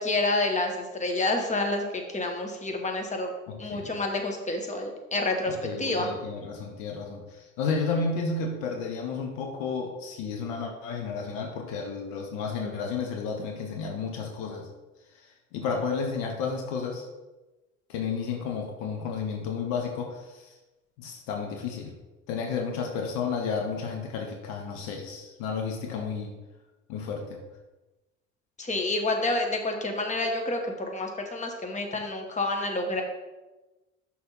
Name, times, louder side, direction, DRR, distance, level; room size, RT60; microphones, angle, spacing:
voice 1, 0.0-3.3 3.6-6.1 28.6-33.0, left 2 dB, 20° left, 3 dB, 1.3 m, -28 dB
voice 2, 3.5-3.9 5.5-14.7 15.5-17.0 17.9-20.4 21.0-21.9 22.3-26.3 26.9-27.4, left 5 dB, 65° left, 3 dB, 1.1 m, -32 dB
5.9 x 4.3 x 5.4 m, 1.1 s
figure-of-eight pair, 55°, 37 cm